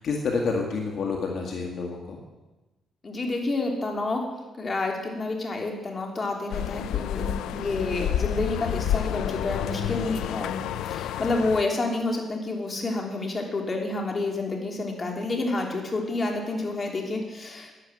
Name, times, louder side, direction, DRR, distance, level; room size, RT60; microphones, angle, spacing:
voice 1, 0.0-2.2, left 4 dB, 65° left, 0 dB, 1.9 m, -28 dB
voice 2, 3.0-17.7, left 2 dB, 35° left, 1 dB, 3.2 m, -29 dB
sound 1, 6.5-11.6, left 11 dB, 85° left, 0.4 m, -29 dB
12.0 x 10.0 x 8.0 m, 1.1 s
cardioid pair, 90°, 0 cm